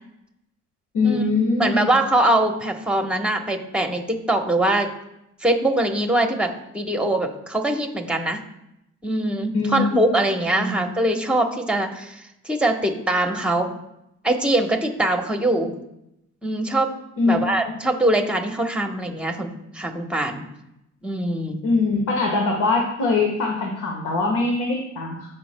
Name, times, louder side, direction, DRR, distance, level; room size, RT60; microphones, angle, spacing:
voice 1, 0.9-1.9 9.5-9.9 10.5-10.8 17.2-17.4 21.6-25.3, left 3 dB, 80° left, 0 dB, 1.4 m, -22 dB
voice 2, 1.6-4.9 5.4-8.4 9.0-13.7 14.2-15.7 16.4-16.9 17.3-20.4 21.0-21.6, right 1 dB, 5° right, 4 dB, 1.0 m, -22 dB
13.5 x 5.2 x 2.2 m, 0.84 s
cardioid pair, 90°, 30 cm